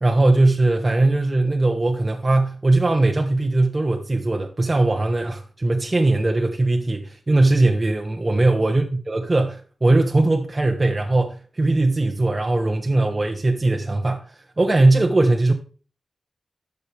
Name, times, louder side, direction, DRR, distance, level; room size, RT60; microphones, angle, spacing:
voice 1, 0.0-14.2 14.6-15.5, right 2 dB, 25° right, 1.0 m, -20 dB
11.5 x 6.6 x 3.4 m
wide cardioid pair, 95°, 0 cm